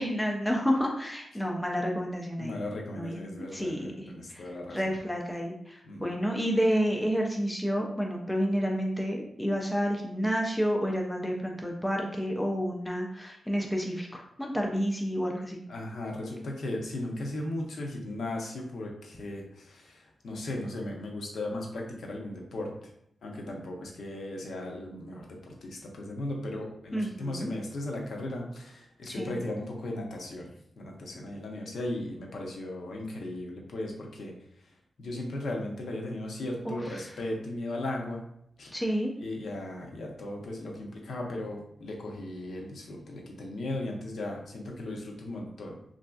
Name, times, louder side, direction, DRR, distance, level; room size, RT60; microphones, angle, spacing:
voice 1, 0.0-2.6 3.0-3.2 3.5-4.4 4.7-15.6 26.9-27.5 29.1-29.4 36.6-37.1 38.7-39.1, equal, 5° left, 0 dB, 0.3 m, -30 dB
voice 2, 2.4-4.9 5.8-6.0 15.7-22.7 23.2-30.5 30.8-34.3 35.0-38.2 38.6-38.8 39.2-45.8, left 1 dB, 70° left, 0 dB, 0.6 m, -37 dB
3.2 x 2.5 x 2.3 m, 0.71 s
wide cardioid pair, 170°, 0 cm